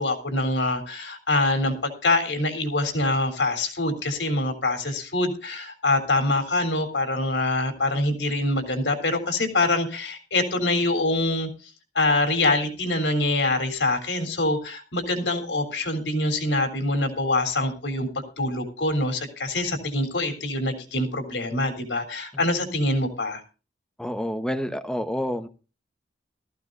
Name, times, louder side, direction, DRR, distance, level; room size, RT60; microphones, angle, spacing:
voice 1, 0.0-11.5 12.0-23.4, left 2 dB, 85° left, 7 dB, 3.5 m, -25 dB
voice 2, 24.0-25.5, equal, 5° left, 9 dB, 1.0 m, -28 dB
18.0 x 14.5 x 2.6 m, 0.33 s
head